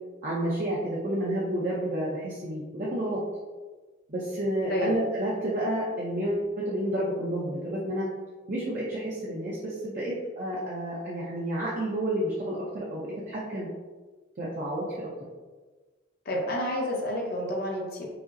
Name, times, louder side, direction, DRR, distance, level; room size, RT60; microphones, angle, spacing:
voice 1, 0.2-3.2 4.1-8.1 8.5-13.7 14.4-15.1, right 1 dB, 40° right, -6 dB, 0.6 m, -30 dB
voice 2, 16.2-18.0, left 1 dB, 50° left, -2 dB, 0.7 m, -29 dB
4.8 x 2.0 x 2.6 m, 1.3 s
head